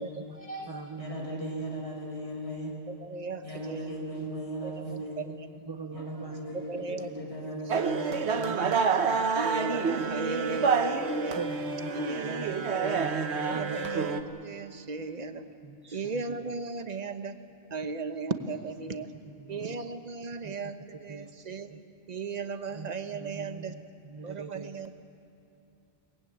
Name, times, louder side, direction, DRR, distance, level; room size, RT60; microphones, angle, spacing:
voice 1, 0.0-2.7 3.4-5.2 5.9-8.6, right 1 dB, 80° left, -1 dB, 5.4 m, -37 dB
voice 2, 0.7-1.5 5.7-6.4 8.5-8.8 9.1-9.3 11.4-14.2 15.6-16.2 19.4-19.8 20.4-20.5 21.1-21.3 21.7-21.8 22.7-22.9 23.2-24.8, right 4 dB, 25° right, 4 dB, 0.7 m, -42 dB
voice 3, 3.0-3.9 4.6-4.9 5.2-5.3 5.7-5.9 6.5-7.1 8.7-8.8 9.3-11.4 11.9-13.1 13.5-15.5 15.9-17.4 17.7-19.1 19.5-21.7 22.1-23.8 24.2-25.0, right 4 dB, 40° right, 9 dB, 1.1 m, -36 dB
sound 1, 7.7-14.2, right 5 dB, 75° right, 1.3 m, -28 dB
23.5 x 20.0 x 8.8 m, 2.6 s
omnidirectional pair, 1.1 m